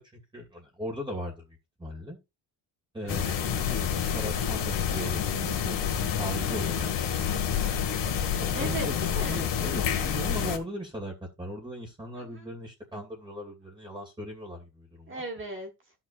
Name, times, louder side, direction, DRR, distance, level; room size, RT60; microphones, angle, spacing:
voice 1, 0.1-2.2 2.9-7.6 8.4-9.0 9.3-15.2, equal, 10° right, 2.5 m, -38 dB
voice 2, 3.0-3.8 6.4-6.9 7.5-8.2 8.5-9.4 12.2-12.5 15.1-15.7, right 2 dB, 25° right, 1.5 m, -39 dB
sound 1, 3.1-10.6, left 8 dB, 65° left, 2.0 m, -28 dB
13.5 x 6.1 x 2.5 m
cardioid pair, 140°, 46 cm